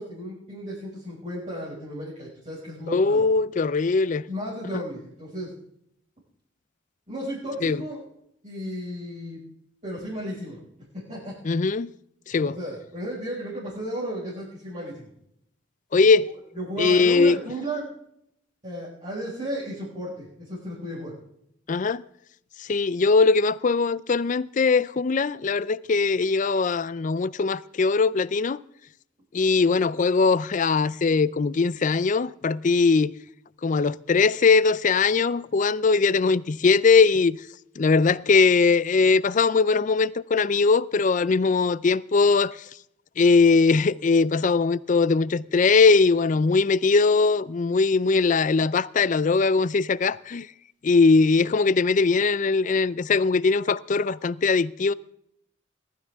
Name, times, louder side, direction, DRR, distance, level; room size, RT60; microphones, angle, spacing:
voice 1, 0.0-3.2 4.3-5.5 7.1-8.0 8.4-9.4 9.8-10.6 11.1-11.3 12.4-15.1 16.5-17.9 18.6-21.1, equal, 40° right, 5.5 m, -34 dB
voice 2, 2.9-4.2 7.6-7.8 11.4-11.9 12.3-12.6 15.9-16.3 16.8-17.4 21.7-22.0 22.6-28.6 29.3-33.1 33.6-37.4 37.8-42.6 43.2-50.5 50.8-54.9, left 4 dB, 40° left, 0.4 m, -20 dB
21.0 x 12.5 x 3.5 m
head